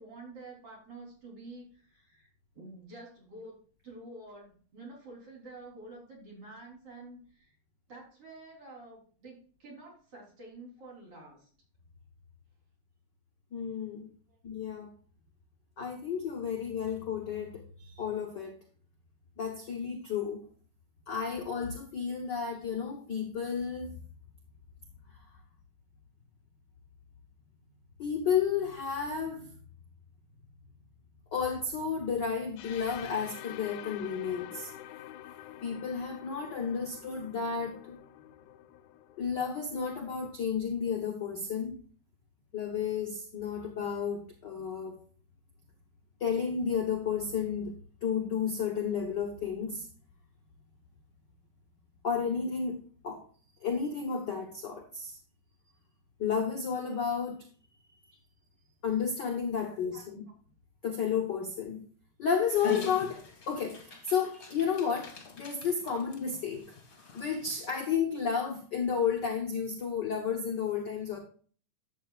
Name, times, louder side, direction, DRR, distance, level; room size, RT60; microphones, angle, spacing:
voice 1, 0.0-3.6 3.8-7.6 7.9-11.5 14.3-14.4 58.1-58.2 59.6-60.1, right 2 dB, 45° right, 4.4 m, -49 dB
voice 2, 13.5-14.1 14.4-14.9 15.8-18.6 19.4-20.4 21.1-24.0 28.0-29.5 31.3-34.7 35.6-38.0 39.2-41.8 42.5-45.0 46.2-47.7 48.0-49.9 52.0-53.2 53.6-55.2 56.2-57.4 58.8-60.2 60.8-61.8 62.2-66.7 67.1-71.2, left 6 dB, 60° left, 1.1 m, -32 dB
sound 1, 32.6-40.4, left 13 dB, 85° left, 2.1 m, -48 dB
Dog, 62.5-67.8, left 4 dB, 35° left, 1.7 m, -44 dB
12.0 x 8.1 x 2.4 m
omnidirectional pair, 3.6 m